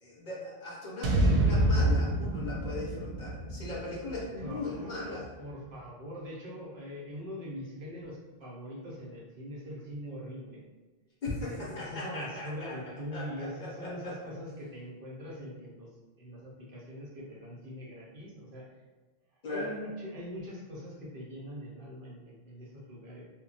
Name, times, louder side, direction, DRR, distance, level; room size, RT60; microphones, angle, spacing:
voice 1, 0.0-5.2 11.2-12.8 13.1-14.2 19.4-19.8, left 2 dB, 55° left, -5 dB, 0.7 m, -38 dB
sound 1, 1.0-5.2, right 1 dB, 90° right, 0.8 m, -28 dB
voice 2, 4.4-10.6 11.4-15.9 16.2-18.7 19.5-23.3, equal, 60° right, -4 dB, 0.8 m, -42 dB
2.2 x 2.1 x 3.8 m, 1.3 s
omnidirectional pair, 1.1 m